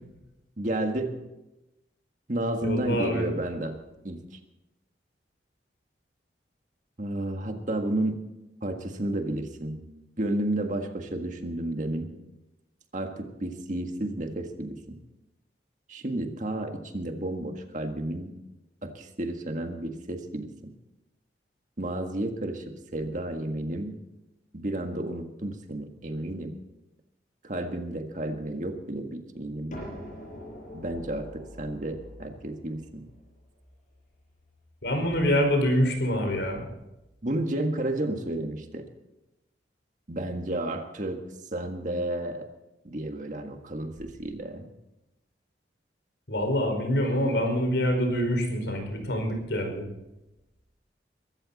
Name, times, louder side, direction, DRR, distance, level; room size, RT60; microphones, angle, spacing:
voice 1, 0.6-1.2 2.3-3.8 4.0-4.3 7.0-8.2 8.6-9.8 10.2-12.1 12.9-15.0 15.9-18.3 18.8-20.5 21.8-24.0 24.5-26.6 27.4-29.8 30.7-33.0 37.2-38.9 40.1-41.2 41.5-42.5 42.8-44.7, right 1 dB, 45° right, 5 dB, 1.7 m, -32 dB
voice 2, 2.6-3.2 34.8-36.7 46.3-49.9, equal, 75° left, 4 dB, 5.0 m, -25 dB
sound 1, 29.7-35.3, equal, 45° left, 6.1 m, -45 dB
23.0 x 13.5 x 4.1 m, 0.94 s
head